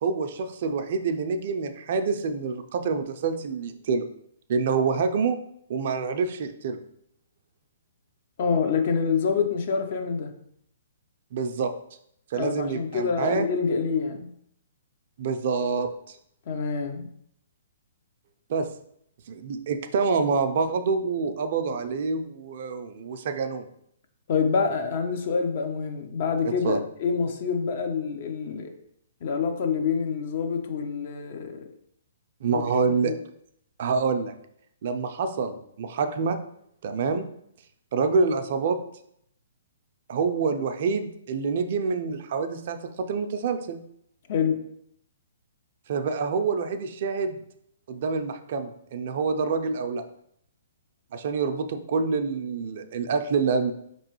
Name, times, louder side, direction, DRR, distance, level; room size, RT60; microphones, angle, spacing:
voice 1, 0.0-4.1 4.5-5.4 5.7-6.8 11.3-11.7 12.3-13.5 15.2-16.2 18.5-18.7 19.3-23.7 26.6-26.8 32.4-33.1 33.8-34.3 34.8-36.4 36.8-37.3 37.9-38.8 40.1-43.8 45.9-47.4 47.9-50.0 51.1-53.7, right 5 dB, 55° right, 7 dB, 0.4 m, -27 dB
voice 2, 8.4-10.3 12.3-14.3 16.5-17.1 24.3-28.7 29.2-31.7 32.5-33.2 44.3-44.6, left 5 dB, 50° left, 6 dB, 0.6 m, -27 dB
4.6 x 3.0 x 2.9 m, 0.71 s
hypercardioid pair, 135°, 0 cm